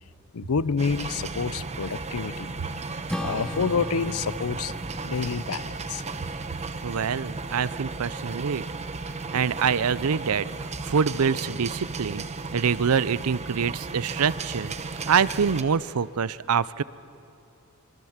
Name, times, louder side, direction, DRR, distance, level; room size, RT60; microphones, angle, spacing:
voice 1, 0.3-2.5 3.2-4.7 5.0-6.0, left 5 dB, 75° left, 18 dB, 0.6 m, -28 dB
sound 1, 0.8-15.6, right 3 dB, 30° right, 1.0 m, -35 dB
Acoustic guitar / Strum, 3.1-7.8, equal, 5° left, 0.9 m, -38 dB
voice 2, 6.8-8.6 9.3-12.2 12.5-14.7 15.1-16.8, right 6 dB, 80° right, 19 dB, 0.6 m, -25 dB
26.0 x 23.5 x 7.3 m, 2.6 s
head